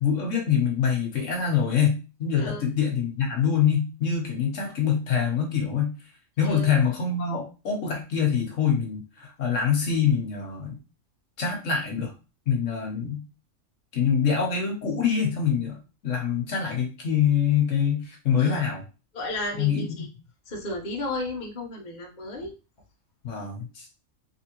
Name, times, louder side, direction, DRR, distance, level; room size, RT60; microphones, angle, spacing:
voice 1, 0.0-5.9 6.4-10.8 11.4-12.1 12.5-13.2 13.9-15.8 16.0-18.8 19.6-20.1 23.2-23.9, left 7 dB, 70° left, 1 dB, 1.3 m, -25 dB
voice 2, 19.1-20.1 20.5-22.5, left 1 dB, 35° left, -1 dB, 1.0 m, -33 dB
3.4 x 3.4 x 2.9 m, 0.31 s
omnidirectional pair, 1.4 m